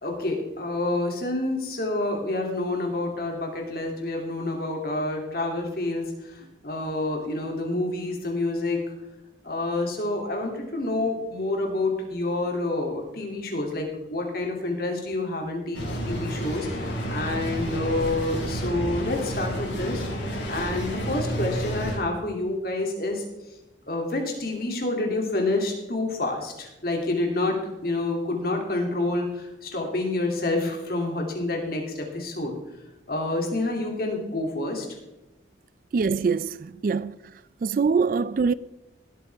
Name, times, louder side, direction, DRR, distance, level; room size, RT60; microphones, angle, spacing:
voice 1, 0.0-6.0 6.6-8.8 9.4-23.2 23.9-27.6 27.8-32.6 33.1-34.9, left 2 dB, 50° left, 2.7 m, -28 dB
sound 1, 15.7-22.0, equal, 90° left, 4.1 m, -30 dB
voice 2, 35.9-37.1 37.6-38.5, right 5 dB, 45° right, 0.3 m, -23 dB
18.5 x 8.5 x 3.5 m
head